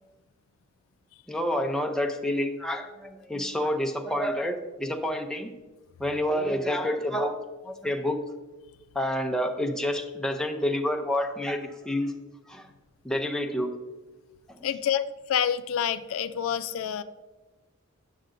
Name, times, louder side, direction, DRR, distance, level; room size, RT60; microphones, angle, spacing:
voice 1, 1.3-5.5 6.0-7.4 7.6-8.2 8.9-12.1 12.5-12.7 13.0-13.7, left 1 dB, 5° left, 3 dB, 0.5 m, -28 dB
voice 2, 14.6-17.0, left 9 dB, 75° left, 12 dB, 0.3 m, -28 dB
8.9 x 6.5 x 2.5 m, 1.2 s
head